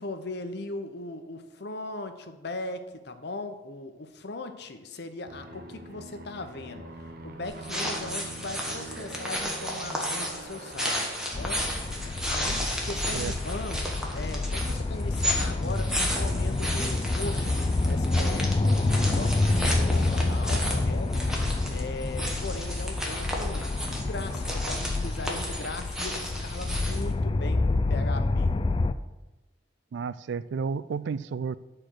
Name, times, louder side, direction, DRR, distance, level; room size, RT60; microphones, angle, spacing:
voice 1, 0.0-11.6 12.2-23.7 24.0-28.5, left 2 dB, 65° left, 8 dB, 0.8 m, -39 dB
Aircraft, 5.3-12.6, right 2 dB, 55° right, 0.8 m, -43 dB
sound 1, 7.4-27.1, equal, 5° right, 1.3 m, -33 dB
sound 2, 11.3-28.9, left 2 dB, 30° left, 0.3 m, -28 dB
voice 2, 29.9-31.6, right 5 dB, 70° right, 16 dB, 0.3 m, -32 dB
10.0 x 4.3 x 6.3 m, 1.1 s
head